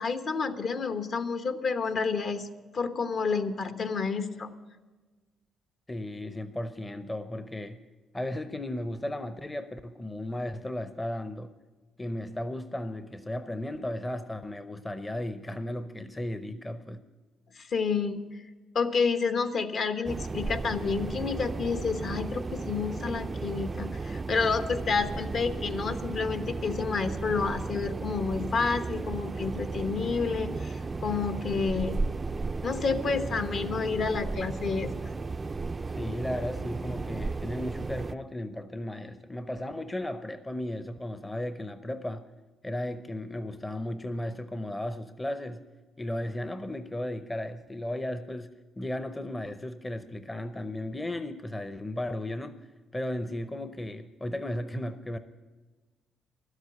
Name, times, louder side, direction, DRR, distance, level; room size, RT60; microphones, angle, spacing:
voice 1, 0.0-2.5 2.7-4.5 17.5-18.4 18.7-32.0 32.6-35.1, left 5 dB, 55° left, 9 dB, 1.0 m, -29 dB
voice 2, 5.9-7.8 8.1-11.5 12.0-17.1 36.0-42.3 42.6-45.6 46.0-52.7 52.9-55.2, left 1 dB, 15° left, 10 dB, 0.7 m, -35 dB
sound 1, 20.0-38.1, right 3 dB, 30° right, 0.4 m, -34 dB
12.0 x 8.1 x 9.4 m, 1.3 s
cardioid pair, 90°, 0 cm